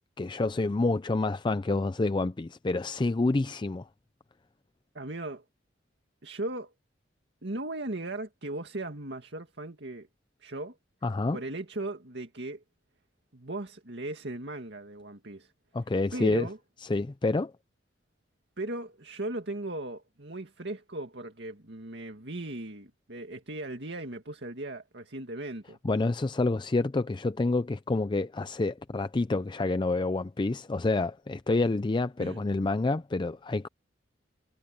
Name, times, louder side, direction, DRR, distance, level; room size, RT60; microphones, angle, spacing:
voice 1, 0.2-3.8 11.0-11.4 15.7-16.5 16.9-17.5 25.8-33.7, left 2 dB, 25° left, 0.4 m, -28 dB
voice 2, 4.9-5.4 6.2-6.7 7.4-10.1 10.4-10.8 11.3-12.6 13.3-15.5 16.1-16.6 18.6-25.8 32.2-32.4, right 2 dB, 65° right, 2.2 m, -37 dB
head